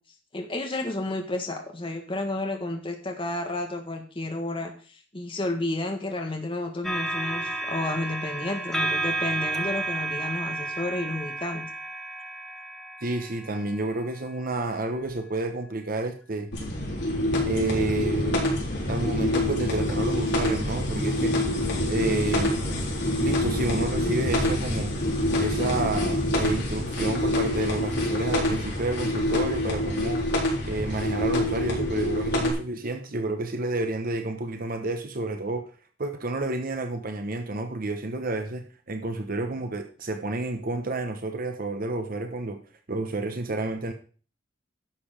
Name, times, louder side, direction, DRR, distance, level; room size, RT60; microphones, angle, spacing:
voice 1, 0.3-11.7, left 2 dB, 30° left, 2 dB, 1.6 m, -31 dB
sound 1, 6.8-14.3 15.1-15.2, right 2 dB, ahead, 1.3 m, -32 dB
voice 2, 13.0-16.5 17.4-18.5 18.9-21.4 21.9-22.7 23.2-25.0 25.4-30.3 30.7-35.7 36.0-42.6 42.9-43.9, right 2 dB, 50° right, 6 dB, 1.1 m, -30 dB
sound 2, 16.5-32.5, left 1 dB, 60° left, 3.8 m, -26 dB
11.5 x 6.9 x 5.1 m, 0.39 s
head